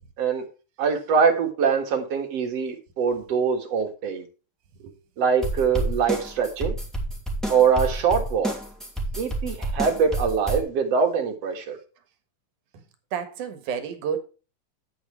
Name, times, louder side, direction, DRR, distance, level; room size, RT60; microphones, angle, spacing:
voice 1, 0.8-4.3 5.2-6.7 7.5-8.5 9.2-11.8, right 6 dB, 55° right, 2.6 m, -23 dB
sound 1, 5.4-10.6, right 1 dB, ahead, 2.3 m, -29 dB
voice 2, 13.1-14.2, right 7 dB, 75° right, 3.0 m, -30 dB
9.7 x 9.2 x 3.2 m
omnidirectional pair, 3.6 m